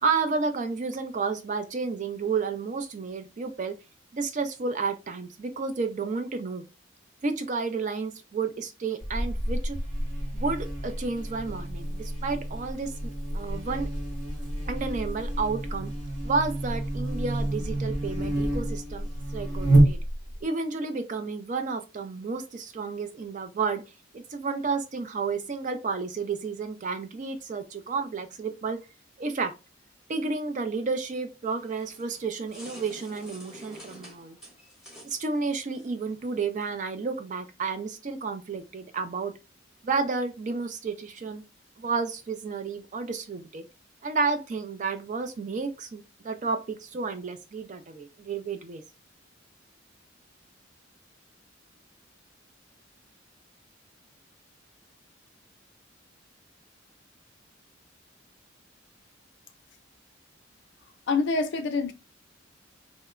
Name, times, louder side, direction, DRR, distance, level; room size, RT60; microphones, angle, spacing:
voice 1, 0.0-3.7 4.1-6.6 7.2-9.8 10.3-13.9 14.7-15.9 16.2-20.0 20.4-23.8 24.1-28.8 29.2-29.5 30.1-34.4 35.0-39.3 39.8-41.4 41.8-43.7 44.0-48.8, right 4 dB, 40° right, 0.4 m, -31 dB
Buzz, 9.0-20.4, right 1 dB, 75° right, 1.3 m, -28 dB
sound 1, 31.5-36.7, equal, 5° right, 0.8 m, -49 dB
voice 2, 61.1-61.9, left 4 dB, 60° left, 0.4 m, -26 dB
2.8 x 2.1 x 2.4 m
head